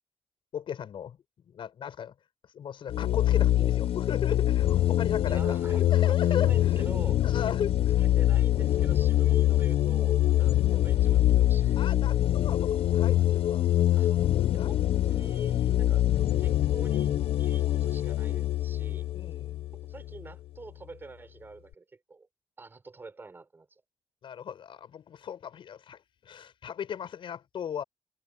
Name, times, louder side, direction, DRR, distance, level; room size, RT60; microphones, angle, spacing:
voice 1, 0.5-1.2 1.5-2.1 2.5-5.6 5.9-6.9 7.2-8.0 10.4-10.6 11.8-13.6 14.6-14.7 15.7-15.9 19.1-19.6 24.2-27.8, left 8 dB, 65° left, 6.5 m, -37 dB
sound 1, 2.9-20.3, left 13 dB, 85° left, 0.7 m, -24 dB
voice 2, 5.3-7.4 8.0-12.0 14.0-14.1 14.5-16.0 16.4-19.1 19.9-22.3 22.6-23.7, right 3 dB, 20° right, 5.2 m, -47 dB
wide cardioid pair, 175°, 9 cm